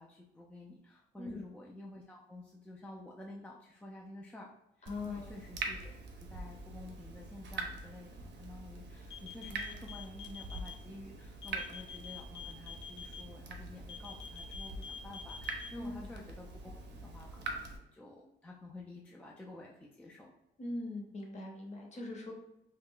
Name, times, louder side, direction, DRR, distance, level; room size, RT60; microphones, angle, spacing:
voice 1, 0.0-4.5 4.8-20.3, left 2 dB, 5° left, -2 dB, 0.3 m, -51 dB
voice 2, 4.9-5.4 15.8-16.1 20.6-22.3, left 2 dB, 35° left, 0 dB, 0.8 m, -41 dB
Water tap faucet / Drip, 4.9-17.8, right 3 dB, 60° right, 0.5 m, -44 dB
sound 1, 9.1-10.7 11.4-13.2 13.9-15.7, left 8 dB, 75° left, 0.5 m, -46 dB
2.3 x 2.1 x 3.6 m, 0.84 s
cardioid pair, 90°, 20 cm